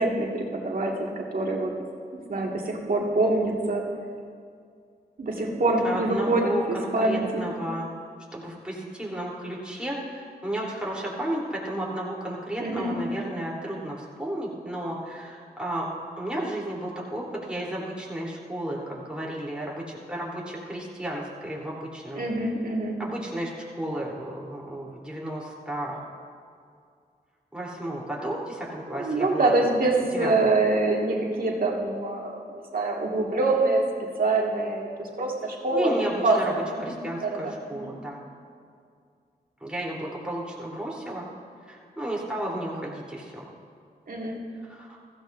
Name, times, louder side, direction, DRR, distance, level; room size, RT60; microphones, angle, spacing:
voice 1, 0.0-1.7 2.1-3.8 5.2-7.5 12.6-12.9 22.2-23.0 29.0-33.8 34.2-36.9 37.2-37.5 37.8-37.9 44.1-44.4, right 2 dB, 60° right, -1 dB, 2.0 m, -25 dB
voice 2, 5.8-7.9 8.3-15.9 16.2-22.2 23.0-23.5 23.8-26.0 27.5-29.5 30.1-30.5 35.7-38.2 39.6-41.2 41.7-43.5 44.6-45.0, right 1 dB, 5° right, -4 dB, 3.5 m, -33 dB
15.5 x 14.5 x 2.7 m, 2.2 s
cardioid pair, 60°, 17 cm